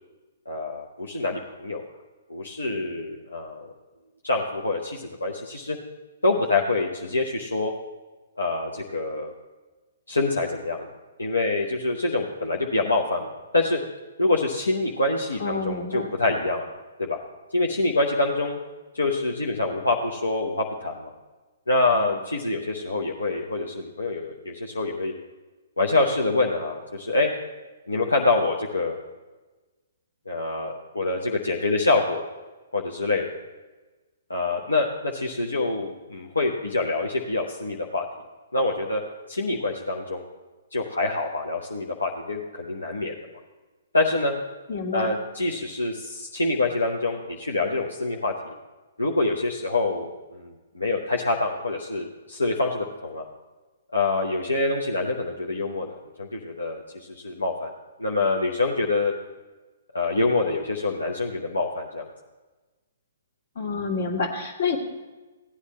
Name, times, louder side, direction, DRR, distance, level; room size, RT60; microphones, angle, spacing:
voice 1, 0.5-1.8 2.3-3.7 4.2-5.8 6.2-7.7 8.4-9.3 10.1-10.9 11.2-13.3 13.5-13.8 14.2-16.7 17.0-17.2 17.5-18.6 18.9-21.1 21.7-25.1 25.8-27.3 27.9-29.0 30.3-32.2 32.7-33.3 34.3-38.0 38.5-39.0 39.3-40.2 40.7-43.1 43.9-44.4 44.9-48.3 49.0-53.3 53.9-56.8 57.1-57.7 58.0-59.1 59.9-62.1, left 2 dB, 90° left, 1 dB, 0.9 m, -26 dB
voice 2, 15.4-16.1 44.7-45.2 63.6-64.8, left 4 dB, 60° left, 3 dB, 1.9 m, -28 dB
16.0 x 9.8 x 3.1 m, 1.2 s
figure-of-eight pair, 125°, 0 cm